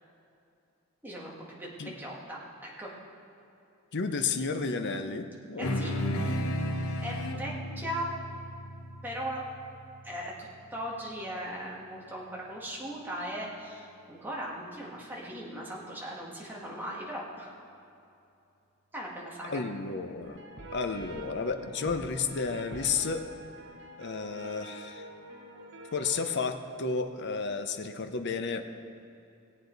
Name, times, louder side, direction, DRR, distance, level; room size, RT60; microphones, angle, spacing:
voice 1, 1.0-1.3 1.6-2.9 5.6-5.9 7.0-8.1 9.0-9.4 10.0-17.5 18.9-19.6, equal, 10° right, -4 dB, 1.8 m, -38 dB
voice 2, 3.9-5.7 19.5-20.4 20.7-23.2 24.0-25.0 25.9-28.7, left 4 dB, 55° left, 8 dB, 0.7 m, -32 dB
sound 1, 5.6-10.4, left 1 dB, 85° left, 1.1 m, -34 dB
sound 2, 20.2-26.5, right 1 dB, 55° right, 1.1 m, -46 dB
18.0 x 8.4 x 4.0 m, 2.7 s
head